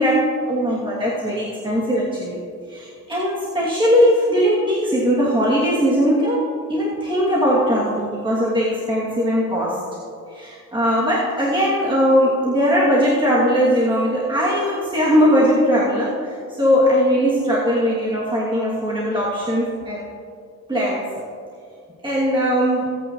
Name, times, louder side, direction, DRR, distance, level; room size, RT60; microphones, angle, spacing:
voice 1, 0.0-2.4 2.7-9.8 10.3-20.1 20.7-21.1 22.0-22.9, equal, 15° right, -7 dB, 2.5 m, -19 dB
18.5 x 9.1 x 3.1 m, 2.3 s
cardioid pair, 90°, 30 cm